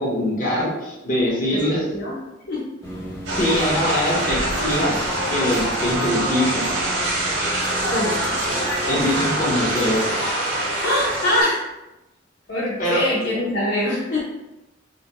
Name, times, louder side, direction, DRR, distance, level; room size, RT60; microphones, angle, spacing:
voice 1, 0.0-1.8 3.3-4.9 5.3-6.7 8.6-10.0 12.8-13.0, left 1 dB, 45° left, -5 dB, 1.2 m, -23 dB
sound 1, 2.8-10.0, right 1 dB, 15° left, 0.8 m, -37 dB
sound 2, 3.3-11.4, right 1 dB, 80° right, 1.3 m, -24 dB
voice 2, 7.9-8.2 10.8-11.7 12.5-14.2, left 1 dB, 60° left, -7 dB, 0.8 m, -23 dB
5.8 x 2.5 x 2.2 m, 0.97 s
head